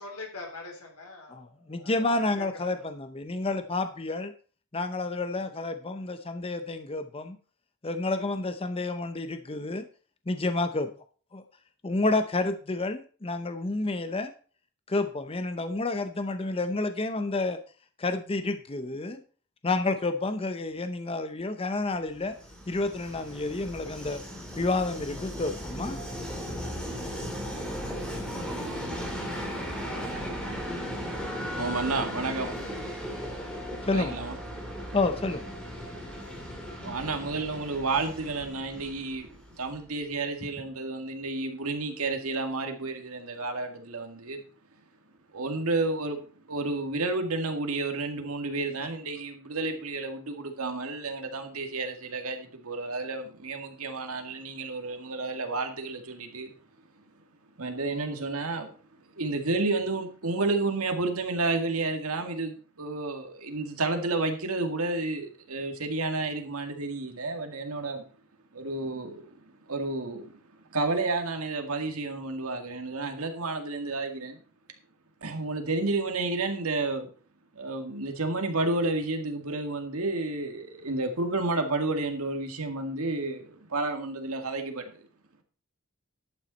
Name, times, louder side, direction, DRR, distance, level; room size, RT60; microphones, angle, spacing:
voice 1, 0.0-2.1 2.4-2.8, left 3 dB, 85° left, 2 dB, 3.9 m, -43 dB
voice 2, 1.3-4.3 4.7-7.4 7.8-9.8 10.3-10.9 11.3-11.4 11.8-14.3 14.9-17.6 18.0-19.2 19.6-22.3 22.7-24.2 24.6-26.0 33.8-34.1 34.9-35.4, left 2 dB, 25° left, 9 dB, 0.6 m, -29 dB
Train, 22.1-39.9, equal, 5° left, 2.9 m, -37 dB
voice 3, 30.3-32.5 33.9-34.4 36.8-39.3 39.6-44.4 45.3-46.2 46.5-56.5 57.6-58.7 59.1-68.0 68.5-70.4 70.7-74.4 75.2-77.1 77.5-85.0, right 3 dB, 75° right, 5 dB, 2.1 m, -31 dB
11.5 x 8.8 x 4.2 m, 0.41 s
head